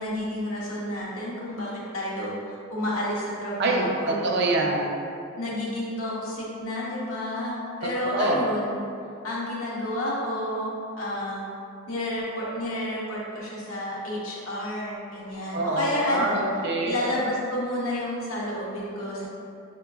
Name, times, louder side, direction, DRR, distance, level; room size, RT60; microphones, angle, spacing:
voice 1, 0.0-4.4 5.4-8.8 9.2-11.4 11.9-16.4 16.8-19.3, left 1 dB, 80° left, -6 dB, 1.0 m, -30 dB
voice 2, 3.6-5.1 8.0-8.5 15.5-17.0, right 2 dB, 55° right, 0 dB, 0.5 m, -25 dB
5.6 x 2.9 x 2.3 m, 2.5 s
head